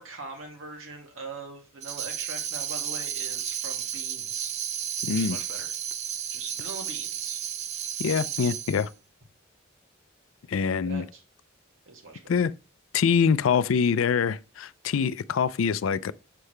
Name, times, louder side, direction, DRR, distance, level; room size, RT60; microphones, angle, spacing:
voice 1, 0.0-4.5 5.1-5.7 6.3-7.4 10.8-11.2 11.9-12.2, right 3 dB, 85° right, 2.0 m, -41 dB
Tambourine, 1.8-8.9, right 9 dB, 35° right, 0.4 m, -33 dB
voice 2, 5.0-5.4 8.0-8.9 10.5-11.1 12.3-12.5 12.9-16.1, left 6 dB, 80° left, 0.4 m, -24 dB
6.7 x 6.5 x 3.2 m
head